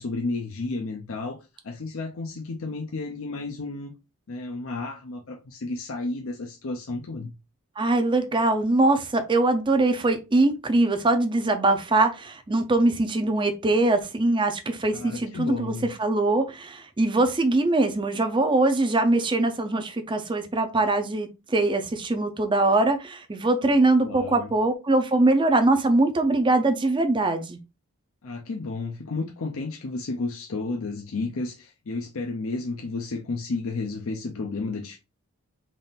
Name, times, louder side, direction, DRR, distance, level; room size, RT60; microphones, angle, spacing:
voice 1, 0.0-3.9 4.3-7.3 14.9-15.9 24.0-24.5 28.2-35.0, left 3 dB, 65° left, 0.6 m, -32 dB
voice 2, 7.8-27.6, right 2 dB, 20° right, 0.5 m, -22 dB
3.7 x 2.5 x 4.0 m
head